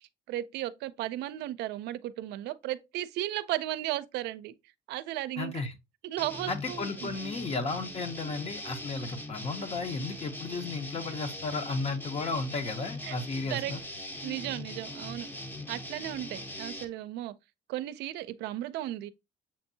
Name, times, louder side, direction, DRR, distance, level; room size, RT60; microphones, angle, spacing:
voice 1, 0.3-4.5 4.9-5.5 6.0-7.2 13.0-13.2 13.5-13.7 14.2-15.3 15.7-17.3 17.7-19.1, right 14 dB, 80° right, 0.4 m, -35 dB
voice 2, 5.4-5.7 6.5-13.8, left 3 dB, 40° left, 0.9 m, -34 dB
sound 1, 6.2-16.8, left 1 dB, 10° left, 0.7 m, -41 dB
7.1 x 2.6 x 2.6 m
cardioid pair, 110°, 17 cm